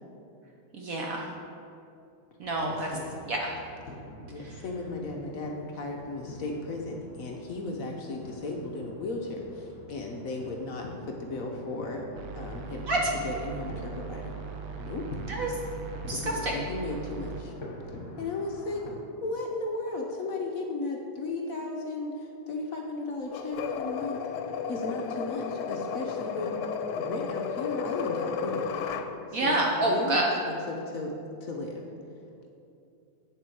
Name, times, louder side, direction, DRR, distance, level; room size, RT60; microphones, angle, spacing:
voice 1, 0.7-1.2 2.4-2.9 3.2-3.5 4.4-4.5 12.9-13.1 15.3-15.5 16.1-16.5 29.3-30.3, right 2 dB, 60° right, -1 dB, 0.9 m, -27 dB
sound 1, 2.4-18.9, left 1 dB, 45° left, 1.3 m, -46 dB
voice 2, 2.6-3.2 4.3-12.0 12.3-12.9 13.2-14.3 14.8-15.0 16.2-17.5 18.2-18.9 19.2-24.2 24.7-26.6 26.9-28.7 29.3-29.6 29.9-31.1 31.4-31.8, left 2 dB, 65° left, 1 dB, 0.8 m, -35 dB
sound 2, 12.1-17.4, right 6 dB, 80° right, 1.4 m, -40 dB
sound 3, 23.3-29.1, left 6 dB, 85° left, 1.4 m, -33 dB
8.2 x 6.5 x 4.6 m, 2.7 s
omnidirectional pair, 2.3 m